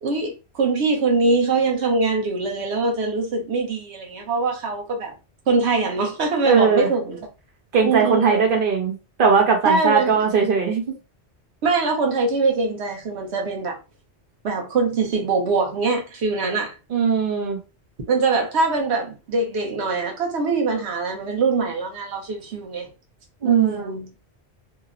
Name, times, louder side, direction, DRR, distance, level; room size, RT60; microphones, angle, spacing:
voice 1, 0.0-5.1 5.5-7.3 7.8-8.6 9.6-10.2 11.6-13.8 14.4-16.7 18.1-22.9 23.4-24.1, right 3 dB, 75° right, 1.0 m, -23 dB
voice 2, 6.4-6.9 7.7-10.8 16.9-17.6 23.4-23.9, right 5 dB, 55° right, 0.9 m, -19 dB
2.8 x 2.1 x 2.4 m
omnidirectional pair, 1.1 m